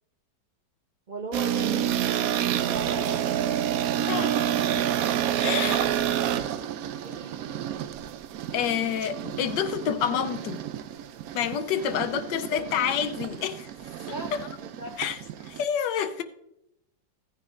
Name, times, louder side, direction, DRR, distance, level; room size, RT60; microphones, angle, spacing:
voice 1, 1.1-3.2 5.4-5.9 7.0-7.5 12.1-12.7 14.1-15.0, right 2 dB, 55° right, 0.5 m, -39 dB
sound 1, 1.3-15.6, right 10 dB, 70° right, 0.8 m, -29 dB
voice 2, 4.1-4.8 5.4-5.9 8.5-10.6 11.3-13.7 15.0-15.2 15.4-16.2, left 9 dB, 85° left, 1.3 m, -28 dB
16.0 x 9.8 x 2.5 m
omnidirectional pair, 1.9 m